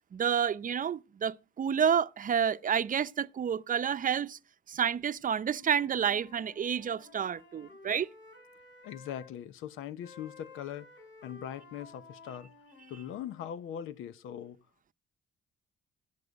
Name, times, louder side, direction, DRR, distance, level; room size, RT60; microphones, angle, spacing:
voice 1, 0.1-4.4 4.7-8.1, right 8 dB, 45° right, 0.7 m, -29 dB
Wind instrument woodwind instrument, 5.4-9.3 10.0-13.5, left 3 dB, 65° left, 5.2 m, -54 dB
voice 2, 8.8-10.9 11.2-12.5 12.9-14.6, left 10 dB, 90° left, 0.8 m, -41 dB
16.0 x 6.8 x 8.0 m
cardioid pair, 90°, 20 cm